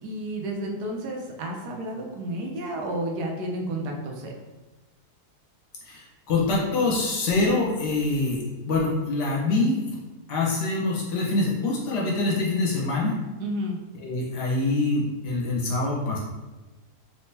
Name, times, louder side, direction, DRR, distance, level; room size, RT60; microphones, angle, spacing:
voice 1, 0.0-4.3 13.4-13.8, right 1 dB, 75° right, 1 dB, 1.2 m, -31 dB
voice 2, 5.8-9.9 10.3-13.1 14.0-16.2, left 2 dB, 85° left, -3 dB, 1.7 m, -25 dB
4.2 x 3.5 x 2.8 m, 1.2 s
omnidirectional pair, 1.7 m